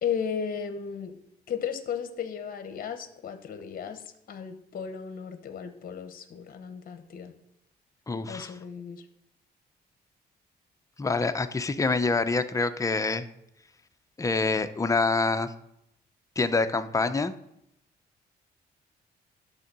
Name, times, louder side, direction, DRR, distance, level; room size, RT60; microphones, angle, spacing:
voice 1, 0.0-1.1 1.5-4.0 4.3-7.3 8.3-9.0, left 7 dB, 55° left, 8 dB, 0.9 m, -35 dB
voice 2, 8.1-8.5 11.0-13.3 14.2-15.5 16.4-17.3, left 3 dB, 20° left, 10 dB, 0.6 m, -26 dB
10.5 x 3.7 x 6.8 m, 0.80 s
cardioid pair, 90°, 17 cm